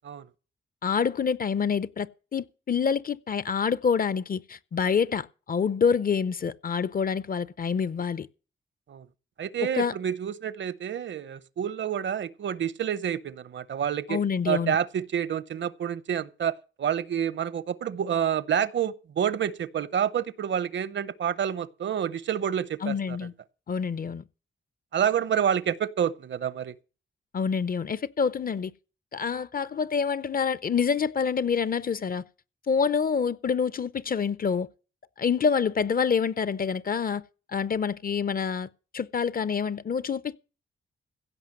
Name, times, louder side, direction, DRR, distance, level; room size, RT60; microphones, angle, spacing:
voice 1, 0.8-8.3 9.7-9.9 14.1-14.8 22.8-23.3 23.7-24.2 27.3-28.7 29.1-32.2 32.7-34.7 35.2-37.2 37.5-40.4, left 6 dB, 45° left, 0.6 m, -27 dB
voice 2, 9.4-14.2 14.5-23.2 24.9-26.8, right 9 dB, 65° right, 0.7 m, -28 dB
16.0 x 5.8 x 7.5 m
cardioid pair, 90°, 21 cm